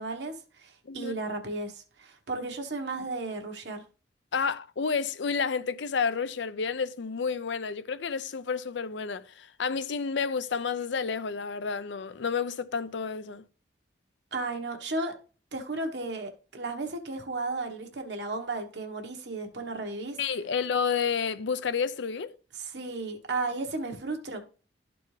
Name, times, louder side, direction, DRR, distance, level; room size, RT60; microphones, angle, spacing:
voice 1, 0.0-3.8 14.3-15.1 15.5-20.2 22.6-24.4, right 3 dB, 75° right, 1.2 m, -34 dB
voice 2, 4.3-13.4 20.2-22.3, left 5 dB, 80° left, 0.5 m, -30 dB
12.5 x 4.3 x 3.2 m
head